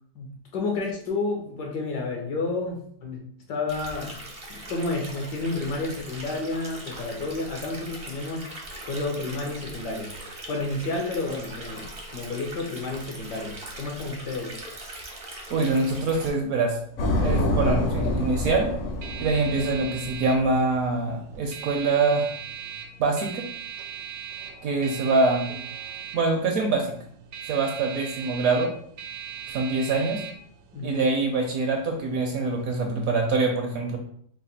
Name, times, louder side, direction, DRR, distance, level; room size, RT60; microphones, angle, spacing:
voice 1, 0.1-3.2 3.5-4.2 4.5-8.5 8.8-10.1 10.5-14.6 30.7-31.1, left 3 dB, 75° left, 0 dB, 1.5 m, -31 dB
Stream, 3.7-16.3, right 1 dB, 40° right, 0.5 m, -41 dB
voice 2, 15.5-16.8 17.2-18.7 19.2-22.3 23.0-23.5 24.6-25.5 26.1-26.9 27.4-28.7 29.5-30.2 30.8-34.0, right 3 dB, 70° right, 3 dB, 0.9 m, -24 dB
sound 1, 16.5-33.1, right 8 dB, 85° right, 1.3 m, -40 dB
sound 2, 17.0-20.7, left 1 dB, 60° left, 1.0 m, -27 dB
4.0 x 2.3 x 4.0 m, 0.62 s
omnidirectional pair, 1.8 m